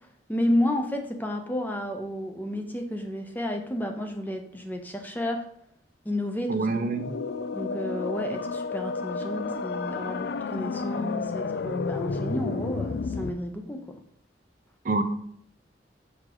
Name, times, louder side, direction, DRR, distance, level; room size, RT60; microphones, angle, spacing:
voice 1, 0.3-5.5 6.1-6.5 7.5-14.0, left 1 dB, 10° left, 4 dB, 0.6 m, -31 dB
voice 2, 6.5-7.1 14.8-15.0, right 3 dB, 45° right, 8 dB, 0.5 m, -26 dB
sound 1, 6.8-13.3, left 4 dB, 60° left, 0.3 m, -31 dB
6.2 x 4.7 x 3.9 m, 0.68 s
head